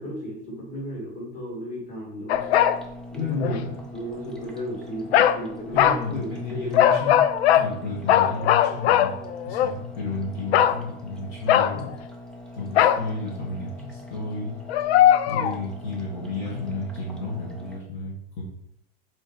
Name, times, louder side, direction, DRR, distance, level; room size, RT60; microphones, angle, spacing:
voice 1, 0.0-2.4 3.1-3.6 3.9-6.9, equal, 25° left, -4 dB, 2.4 m, -34 dB
sound 1, 2.3-2.8 3.4-3.6 5.1-5.4 5.8-6.0 6.7-7.7 8.1-9.7 10.5-10.8 11.5-11.9 12.8-13.1 14.7-15.6, left 10 dB, 90° left, 0.5 m, -19 dB
sound 2, 2.3-17.8, left 1 dB, ahead, 0.3 m, -42 dB
voice 2, 3.2-3.7 5.7-7.2 7.5-9.1 9.4-11.9 12.5-14.9 15.3-18.4, left 3 dB, 45° left, -6 dB, 1.9 m, -32 dB
6.4 x 3.9 x 4.5 m, 0.77 s
supercardioid pair, 165°, 31 cm